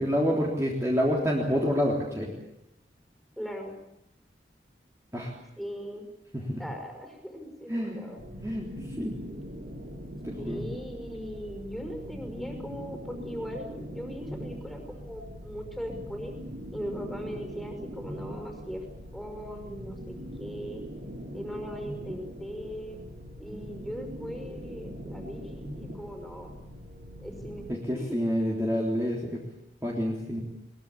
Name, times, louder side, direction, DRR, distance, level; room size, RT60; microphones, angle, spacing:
voice 1, 0.0-2.3 5.1-5.3 6.3-6.6 7.7-8.0 8.4-9.1 10.2-10.6 27.7-29.4 29.8-30.4, equal, 15° right, -3 dB, 3.6 m, -28 dB
voice 2, 3.4-3.7 5.6-6.0 6.6-8.2 10.3-16.3 16.7-18.8 19.1-20.8 21.3-23.0 23.4-26.5 27.2-27.7 27.9-28.2, equal, ahead, 4 dB, 5.6 m, -39 dB
sound 1, 8.2-27.8, equal, 60° right, 3.4 m, -41 dB
22.5 x 21.5 x 8.6 m, 0.83 s
head